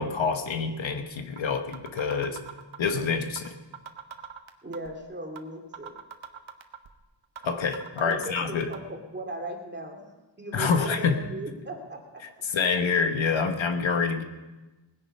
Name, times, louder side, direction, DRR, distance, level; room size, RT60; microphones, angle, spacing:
voice 1, 0.0-2.4 2.8-3.5 7.4-8.7 10.5-11.2 12.4-14.2, left 5 dB, 80° left, 7 dB, 1.2 m, -27 dB
sound 1, 1.4-1.5 1.7-2.9 3.4-3.5 3.7-4.9 5.4-5.5 5.7-6.9 7.4-7.5 7.7-8.8, right 7 dB, 90° right, 1.1 m, -41 dB
voice 2, 4.6-5.9 8.0-10.0 10.4-12.5, right 1 dB, 25° right, 1 dB, 2.3 m, -38 dB
19.5 x 10.0 x 5.4 m, 1.1 s
wide cardioid pair, 120°, 45 cm